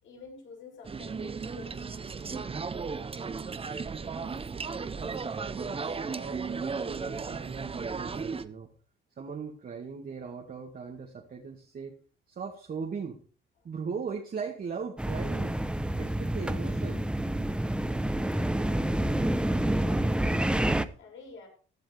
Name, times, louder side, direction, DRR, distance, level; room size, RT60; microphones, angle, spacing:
voice 1, 0.0-2.2 18.5-20.5 21.0-21.5, left 3 dB, 75° left, 0 dB, 6.9 m, -49 dB
sound 1, 0.8-8.4, right 5 dB, 30° right, 0.9 m, -35 dB
voice 2, 3.8-4.4 4.9-8.7 9.1-12.0 12.3-13.2 13.6-15.6 16.0-17.0, right 5 dB, 50° right, 0 dB, 2.3 m, -39 dB
sound 2, 15.0-20.9, right 1 dB, 5° right, 0.9 m, -28 dB
16.0 x 11.5 x 3.5 m, 0.39 s
cardioid pair, 90°, 20 cm